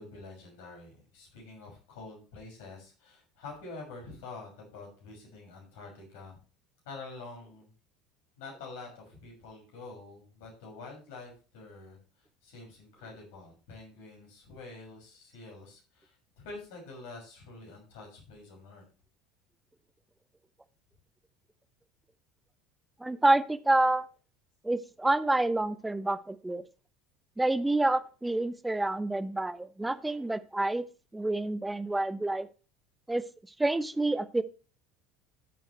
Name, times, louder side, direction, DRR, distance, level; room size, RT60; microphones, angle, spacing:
voice 1, 0.0-6.3 6.8-7.7 8.4-12.0 12.4-18.8, left 3 dB, 60° left, 0 dB, 6.3 m, -47 dB
voice 2, 23.0-24.1 24.6-26.6 27.4-30.8 31.1-32.5 33.1-33.2 33.6-34.4, right 2 dB, 10° right, 14 dB, 0.8 m, -28 dB
13.5 x 8.1 x 3.2 m, 0.35 s
figure-of-eight pair, 70°, 0 cm